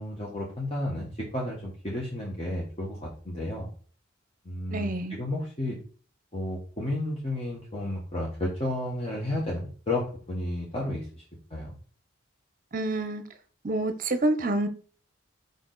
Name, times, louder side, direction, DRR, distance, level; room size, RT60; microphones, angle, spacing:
voice 1, 0.0-3.7 4.4-5.8 6.3-11.2 11.5-11.8, left 1 dB, 30° left, -3 dB, 1.1 m, -32 dB
voice 2, 4.7-5.2 12.7-13.2 13.6-14.7, right 2 dB, 40° right, 10 dB, 0.7 m, -27 dB
5.2 x 4.6 x 3.9 m, 0.43 s
head